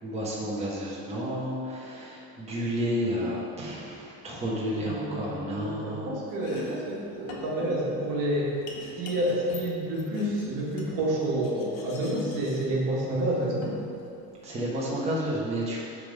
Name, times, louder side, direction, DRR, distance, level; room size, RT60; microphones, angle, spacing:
voice 1, 0.0-6.1 14.4-15.8, equal, 15° right, -6 dB, 1.2 m, -31 dB
voice 2, 4.8-8.6 9.0-13.7, right 1 dB, 50° right, -3 dB, 1.7 m, -29 dB
Domestic sounds home sounds, 6.3-14.5, left 2 dB, 90° left, 1.3 m, -45 dB
8.9 x 3.7 x 5.4 m, 2.7 s
cardioid pair, 135°, 39 cm